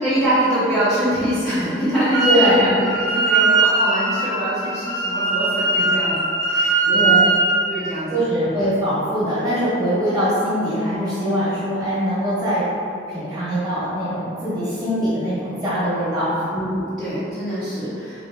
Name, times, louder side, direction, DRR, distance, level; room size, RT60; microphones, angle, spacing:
voice 1, 0.0-7.2 7.7-8.5 16.5-18.3, equal, 5° left, -15 dB, 0.6 m, -24 dB
Wind instrument woodwind instrument, 2.1-2.5 2.8-7.6, right 3 dB, 70° right, 0.7 m, -19 dB
voice 2, 2.2-2.7 6.9-7.3 8.1-12.6 13.1-16.5, equal, 20° right, -10 dB, 1.2 m, -22 dB
3.8 x 3.0 x 2.6 m, 2.6 s
head